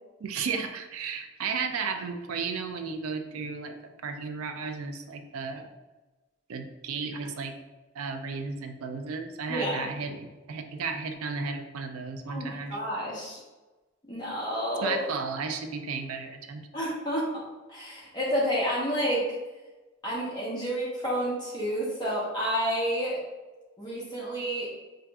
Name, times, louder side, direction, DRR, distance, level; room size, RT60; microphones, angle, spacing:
voice 1, 0.2-5.7 6.5-7.5 7.9-12.8 14.8-16.6, right 5 dB, 85° right, 6 dB, 0.4 m, -34 dB
voice 2, 9.5-9.9 12.3-13.4 14.1-15.0 16.7-19.4 20.0-23.2 23.8-24.7, equal, 20° left, -6 dB, 0.9 m, -30 dB
5.7 x 2.5 x 2.3 m, 1.2 s
head